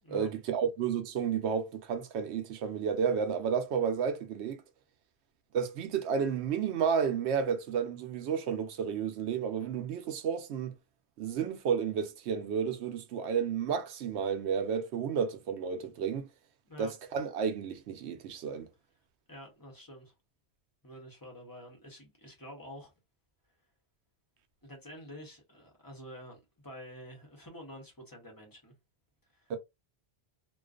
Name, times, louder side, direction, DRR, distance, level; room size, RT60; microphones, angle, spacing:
voice 1, 0.1-4.6 5.5-10.7 11.2-16.3 16.8-18.7 29.5-29.6, right 7 dB, 85° right, 0.9 m, -31 dB
voice 2, 19.3-20.1 20.8-22.9 24.6-28.7 29.3-29.5, equal, 20° left, 0.7 m, -48 dB
2.4 x 2.3 x 2.3 m
omnidirectional pair, 1.1 m